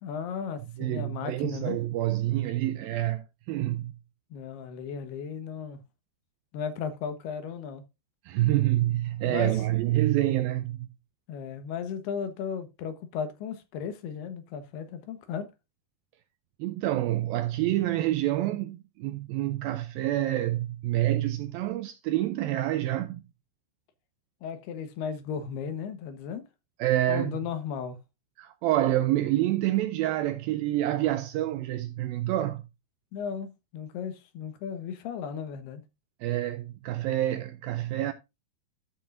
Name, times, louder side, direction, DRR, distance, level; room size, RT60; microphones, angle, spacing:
voice 1, 0.0-1.8 4.3-5.8 6.5-7.8 9.2-9.6 11.3-15.5 24.4-26.4 27.1-28.0 33.1-35.8, left 7 dB, 75° left, 3.2 m, -35 dB
voice 2, 0.8-3.9 8.3-10.9 16.6-23.2 26.8-27.4 28.4-32.6 36.2-38.1, right 14 dB, 80° right, 2.1 m, -27 dB
13.5 x 6.4 x 2.5 m
omnidirectional pair, 4.8 m